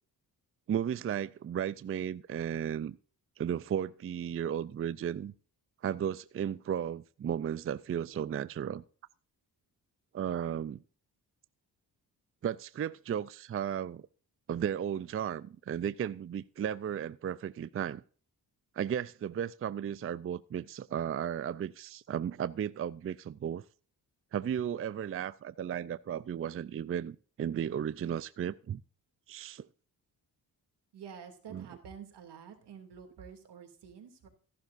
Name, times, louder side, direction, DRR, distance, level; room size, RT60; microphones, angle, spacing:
voice 1, 0.7-3.0 3.4-5.3 5.8-8.8 10.1-10.8 12.4-14.1 14.5-18.0 18.7-23.6 24.3-28.8 29.3-29.7 31.5-31.6, right 9 dB, 35° right, 0.4 m, -34 dB
voice 2, 30.9-34.3, right 7 dB, 85° right, 2.6 m, -49 dB
14.5 x 11.5 x 2.6 m
cardioid pair, 100°, 40 cm